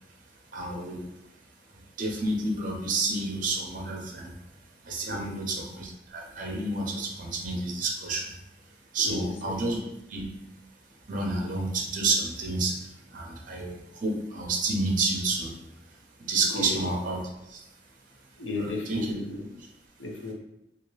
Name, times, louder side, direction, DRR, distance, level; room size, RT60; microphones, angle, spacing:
voice 1, 0.5-1.1 1.7-4.4 4.8-8.3 8.9-9.8 10.1-10.3 11.1-15.6 16.2-17.2 17.5-17.6 18.5-19.1, right 3 dB, 50° right, 0 dB, 0.7 m, -30 dB
voice 2, 5.1-5.4 9.0-9.6 16.5-16.9 18.4-19.5 20.0-20.3, left 2 dB, 85° left, 0 dB, 0.7 m, -34 dB
2.9 x 2.8 x 3.1 m, 0.90 s
head